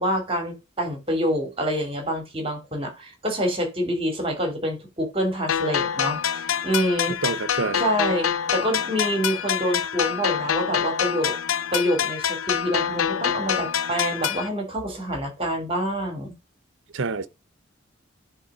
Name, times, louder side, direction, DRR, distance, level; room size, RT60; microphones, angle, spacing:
voice 1, 0.0-6.2 6.6-7.2 7.8-11.4 11.7-16.3, equal, 30° right, 2.8 m, -26 dB
sound 1, 5.5-14.5, left 8 dB, 80° left, 0.5 m, -26 dB
voice 2, 7.2-7.8 16.9-17.3, right 4 dB, 65° right, 0.7 m, -27 dB
10.0 x 3.7 x 5.5 m
head